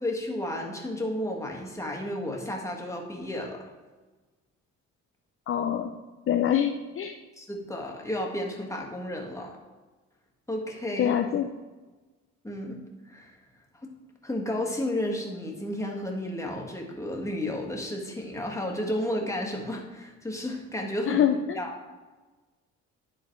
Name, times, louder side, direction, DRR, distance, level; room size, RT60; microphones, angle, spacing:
voice 1, 0.0-3.6 7.4-9.6 10.5-11.2 12.4-12.8 13.0-13.4 13.7-13.9 14.2-21.7, left 1 dB, 10° left, 0 dB, 1.6 m, -32 dB
voice 2, 5.5-5.9 6.3-7.2 11.0-11.5 21.1-21.6, left 9 dB, 45° left, 5 dB, 0.5 m, -25 dB
10.5 x 3.9 x 4.5 m, 1.3 s
cardioid pair, 90°, 30 cm